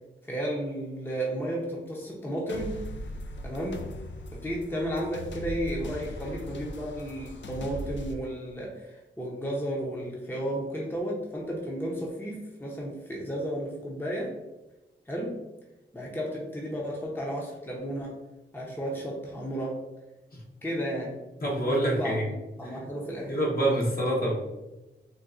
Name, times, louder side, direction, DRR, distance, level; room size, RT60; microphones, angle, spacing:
voice 1, 0.2-2.8 3.4-3.9 4.3-14.4 15.1-15.4 15.9-18.2 18.5-19.8 20.6-21.2 21.8-23.3, equal, 10° left, -3 dB, 0.7 m, -33 dB
sound 1, 2.5-8.1, equal, 65° left, 0.4 m, -39 dB
voice 2, 21.4-22.3 22.6-22.8 23.3-24.4, right 1 dB, 50° left, -3 dB, 1.0 m, -26 dB
3.9 x 2.2 x 2.5 m, 1.0 s
cardioid pair, 50°, 20 cm